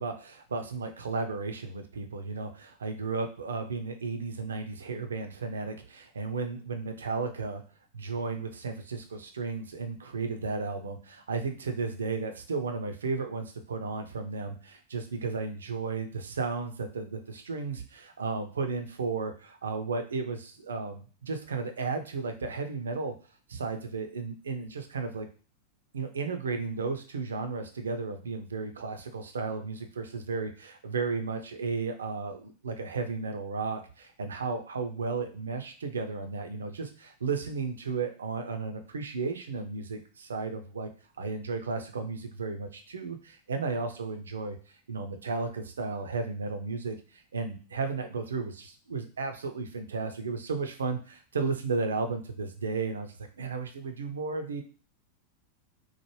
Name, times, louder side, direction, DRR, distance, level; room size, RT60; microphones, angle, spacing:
voice 1, 0.0-7.6 7.9-23.1 23.5-25.3 25.9-40.9 41.2-44.6 44.9-54.6, right 4 dB, 70° right, 6 dB, 0.4 m, -34 dB
3.1 x 2.0 x 3.1 m, 0.37 s
figure-of-eight pair, 90°, 0 cm